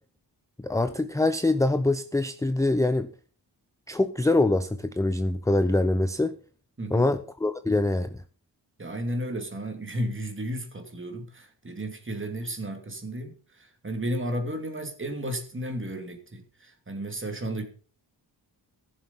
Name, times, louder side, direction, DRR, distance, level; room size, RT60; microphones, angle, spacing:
voice 1, 0.6-3.1 3.9-6.3 6.9-8.2, left 2 dB, 10° left, 11 dB, 0.5 m, -24 dB
voice 2, 6.8-7.1 8.8-17.7, right 1 dB, 30° right, 6 dB, 2.6 m, -33 dB
15.5 x 7.1 x 5.5 m, 0.42 s
wide cardioid pair, 120°, 42 cm